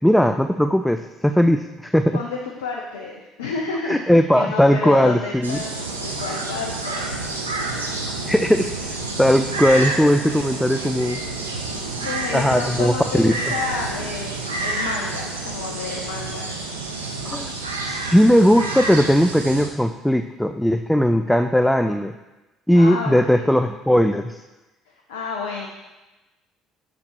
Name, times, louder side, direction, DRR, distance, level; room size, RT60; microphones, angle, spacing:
voice 1, 0.0-2.2 3.8-5.6 8.1-11.2 12.3-13.4 17.2-17.5 17.8-22.1 22.7-24.4, equal, 5° left, 8 dB, 0.3 m, -18 dB
voice 2, 2.1-4.0 4.3-5.7 6.0-7.2 7.7-8.0 12.0-16.6 22.7-23.5 24.9-25.7, left 4 dB, 75° left, 0 dB, 0.6 m, -31 dB
sound 1, 5.4-19.7, right 3 dB, 85° right, 0.7 m, -29 dB
6.7 x 5.1 x 4.7 m, 1.1 s
figure-of-eight pair, 55°, 0 cm